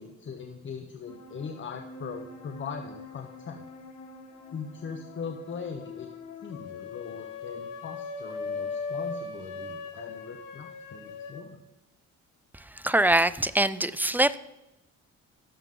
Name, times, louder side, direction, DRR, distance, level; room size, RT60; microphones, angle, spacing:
voice 1, 0.0-3.6 4.5-6.1 6.4-11.6, left 5 dB, 40° left, 5 dB, 1.0 m, -40 dB
sound 1, 1.1-6.5, left 3 dB, 65° left, 2.1 m, -46 dB
sound 2, 6.5-11.5, left 4 dB, 85° left, 1.4 m, -37 dB
voice 2, 12.8-14.4, right 1 dB, 5° right, 16 dB, 0.4 m, -23 dB
16.5 x 7.0 x 3.8 m, 0.94 s
cardioid pair, 90°, 30 cm